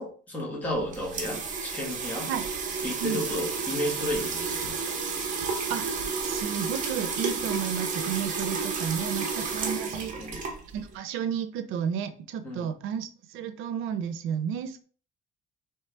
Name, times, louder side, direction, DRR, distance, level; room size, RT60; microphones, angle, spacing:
voice 1, 0.0-2.3 2.8-4.8 10.2-10.4 12.4-12.7, left 1 dB, 5° left, -4 dB, 1.4 m, -33 dB
sound 1, 0.6-10.9, right 5 dB, 40° right, 1.0 m, -31 dB
voice 2, 5.7-10.2 10.7-14.8, right 8 dB, 90° right, 10 dB, 0.6 m, -32 dB
4.5 x 3.2 x 3.3 m, 0.42 s
cardioid pair, 180°, 20 cm